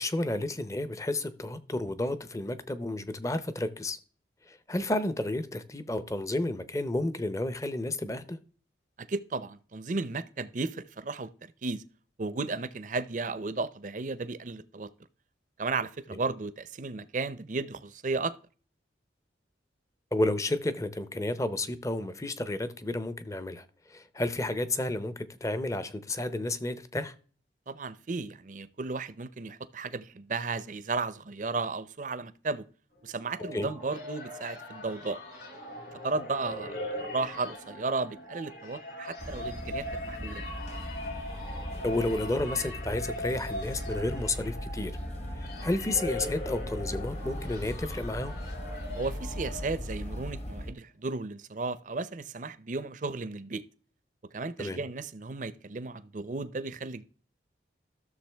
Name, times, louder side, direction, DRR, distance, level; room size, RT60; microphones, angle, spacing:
voice 1, 0.0-4.0 4.5-8.4 20.1-27.1 33.5-33.7 41.8-44.9 45.4-48.3 54.6-54.8, left 2 dB, 15° left, 0.6 m, -31 dB
voice 2, 9.0-11.8 12.2-14.9 15.6-18.3 27.7-32.7 33.0-35.2 36.0-40.4 48.9-53.6 54.3-57.0, right 3 dB, 40° right, 0.6 m, -34 dB
sound 1, 33.1-50.0, left 1 dB, 60° left, 3.4 m, -41 dB
sound 2, 39.2-50.7, equal, 35° left, 1.0 m, -39 dB
13.0 x 6.8 x 3.4 m
head